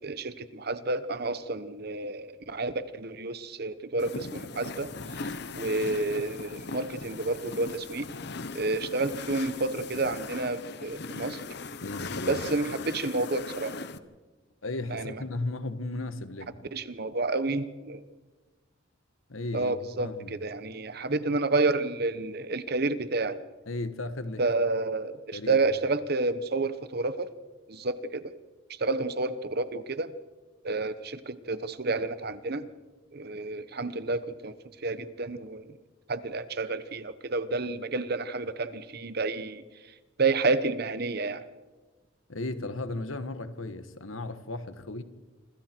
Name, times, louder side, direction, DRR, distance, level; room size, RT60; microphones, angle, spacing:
voice 1, 0.0-4.9 5.5-8.1 8.5-11.4 12.3-13.8 14.9-15.2 16.7-18.0 19.5-23.4 24.4-27.3 27.7-28.3 28.8-30.1 30.6-32.7 33.1-34.5 34.8-35.7 36.1-39.6 40.2-41.4, right 3 dB, 50° right, 1.1 m, -30 dB
sound 1, 4.0-14.0, left 4 dB, 55° left, 1.0 m, -39 dB
voice 2, 11.8-12.4 14.6-16.6 19.3-20.4 23.7-24.4 25.3-25.7 42.3-45.0, left 2 dB, 85° left, 1.5 m, -35 dB
27.0 x 26.0 x 4.6 m
head